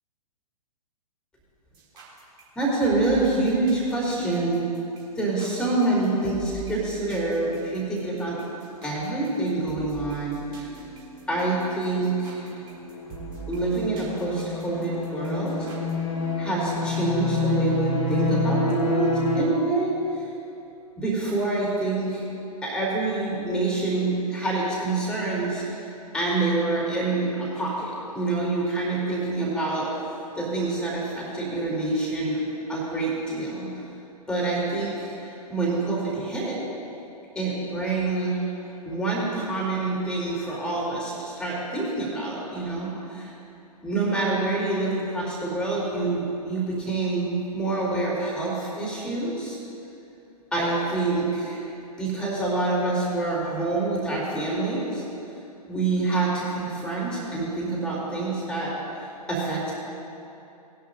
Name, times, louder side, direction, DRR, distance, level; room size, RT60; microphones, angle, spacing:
sound 1, 1.7-15.9, right 7 dB, 25° right, 2.7 m, -44 dB
voice 1, 2.5-4.7 5.2-8.4 8.8-10.7 11.3-12.5 13.5-15.5 16.4-20.2 21.0-22.3 22.6-25.9 26.1-29.9 30.3-32.4 32.7-33.7 34.3-36.6 37.3-38.5 38.8-43.3 43.8-49.6 50.5-51.6 52.0-55.0 55.7-59.7, right 2 dB, 5° left, -5 dB, 3.2 m, -26 dB
sound 2, 10.7-19.5, left 2 dB, 25° left, 2.0 m, -28 dB
19.0 x 11.0 x 2.6 m, 2.8 s
figure-of-eight pair, 115°, 20 cm